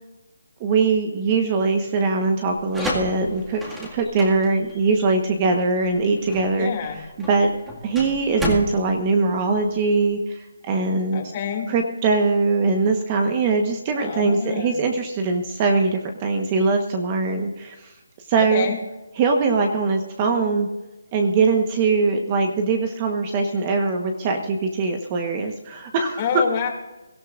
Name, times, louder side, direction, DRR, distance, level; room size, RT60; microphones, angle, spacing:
voice 1, 0.6-7.0 7.3-7.5 7.8-11.2 11.7-17.9 18.3-18.7 19.2-20.7 21.1-26.3, right 4 dB, 20° right, 4 dB, 1.2 m, -22 dB
sound 1, 2.5-10.1, equal, 5° right, 2.0 m, -32 dB
voice 2, 6.6-7.0 11.1-11.7 13.9-14.9 18.4-18.8 26.2-26.7, left 7 dB, 25° left, 2 dB, 2.6 m, -27 dB
23.0 x 13.5 x 2.6 m, 1.1 s
hypercardioid pair, 165°, 0 cm